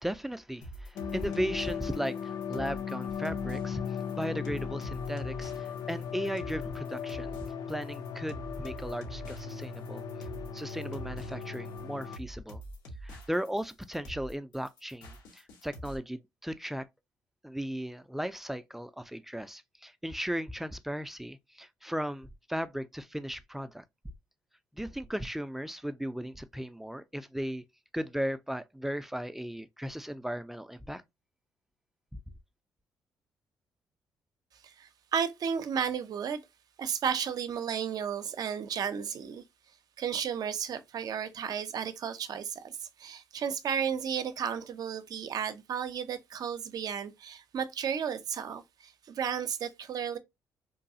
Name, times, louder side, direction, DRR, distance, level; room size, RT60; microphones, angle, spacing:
voice 1, 0.0-3.8 4.1-7.4 7.7-10.0 10.5-12.6 13.0-16.9 17.4-23.8 24.8-27.6 27.9-31.0, equal, 5° right, 0.3 m, -36 dB
sound 1, 0.6-16.0, right 1 dB, 85° left, 0.8 m, -46 dB
sound 2, 1.0-12.2, left 7 dB, 65° left, 0.4 m, -37 dB
voice 2, 34.6-36.4 36.8-39.4 40.0-50.2, right 7 dB, 60° right, 0.5 m, -33 dB
3.0 x 2.3 x 2.6 m
supercardioid pair, 70°, 7 cm